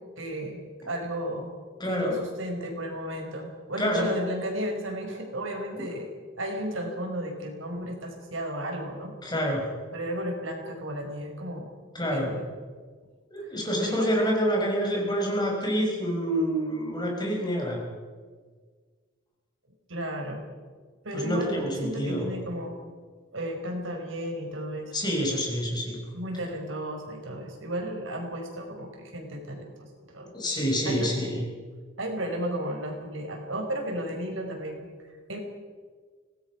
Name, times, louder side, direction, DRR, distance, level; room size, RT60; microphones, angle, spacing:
voice 1, 0.2-1.5 1.8-6.1 6.4-9.2 9.9-11.7 12.1-12.5 13.4-13.5 13.8-14.1 19.9-20.4 21.0-22.8 23.3-24.9 26.1-30.3 30.8-31.1 32.0-35.4, equal, 80° right, 2 dB, 5.4 m, -34 dB
voice 2, 1.8-2.2 3.8-4.1 5.8-5.9 9.2-9.6 11.9-12.3 13.3-17.8 21.1-22.3 24.9-26.0 30.3-31.4, equal, 20° left, -1 dB, 5.8 m, -27 dB
25.0 x 18.5 x 6.1 m, 1.5 s
head